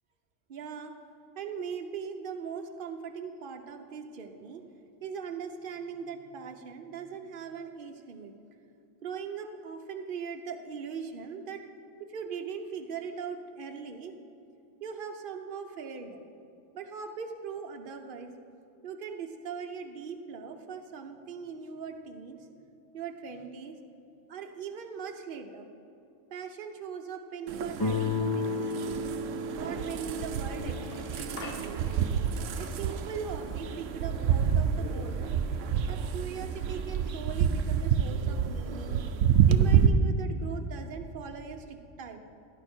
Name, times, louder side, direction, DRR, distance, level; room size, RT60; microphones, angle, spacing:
voice 1, 0.5-0.9 1.3-4.6 5.0-8.3 9.0-11.6 12.1-14.1 14.8-16.2 16.7-18.3 18.8-22.5 22.9-23.8 24.3-25.7 26.3-29.0 29.5-31.9 32.6-35.4 35.9-39.0 39.5-42.2, right 6 dB, 45° right, 5 dB, 0.9 m, -40 dB
sound 1, 27.5-39.9, right 8 dB, 75° right, 0.9 m, -28 dB
Guitar, 27.8-32.6, left 3 dB, 25° left, 0.6 m, -34 dB
sound 2, 30.6-37.4, left 4 dB, 50° left, 1.1 m, -50 dB
16.5 x 10.0 x 4.4 m, 2.7 s
omnidirectional pair, 1.3 m